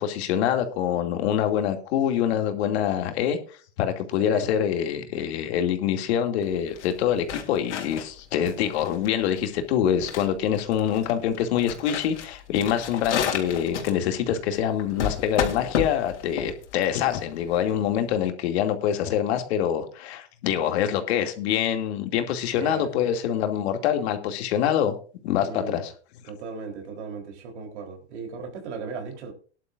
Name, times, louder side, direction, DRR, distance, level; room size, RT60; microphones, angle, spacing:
voice 1, 0.0-24.9 25.2-25.9, left 9 dB, 65° left, 2.6 m, -25 dB
voice 2, 4.2-4.5 22.6-22.9 25.4-25.9 26.3-29.3, right 4 dB, 75° right, 3.9 m, -37 dB
sound 1, 6.4-18.1, left 8 dB, 80° left, 3.4 m, -32 dB
18.5 x 11.0 x 2.6 m
hypercardioid pair, 115°, 34 cm